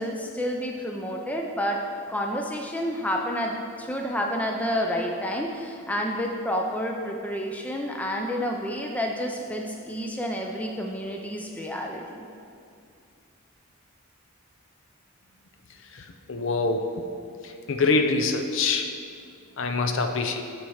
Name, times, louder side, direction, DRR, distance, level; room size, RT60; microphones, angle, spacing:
voice 1, 0.0-1.8 2.1-12.2, equal, 5° left, 1 dB, 0.4 m, -29 dB
voice 2, 16.3-16.8 17.7-18.9 19.6-20.4, left 3 dB, 55° left, 5 dB, 0.5 m, -24 dB
7.2 x 4.7 x 6.4 m, 2.4 s
head